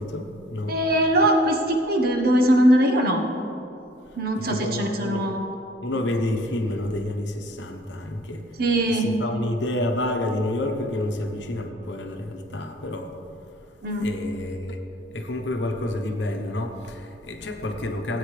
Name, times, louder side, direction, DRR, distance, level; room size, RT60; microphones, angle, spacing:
voice 1, 0.0-0.8 4.4-5.3 5.8-8.5 8.9-13.2 14.0-14.8 15.1-18.2, left 1 dB, 80° left, 5 dB, 1.0 m, -29 dB
voice 2, 0.7-3.3 4.2-5.5 8.6-9.1 13.8-14.1, right 1 dB, 60° right, 3 dB, 1.1 m, -21 dB
17.0 x 8.9 x 3.3 m, 2.9 s
head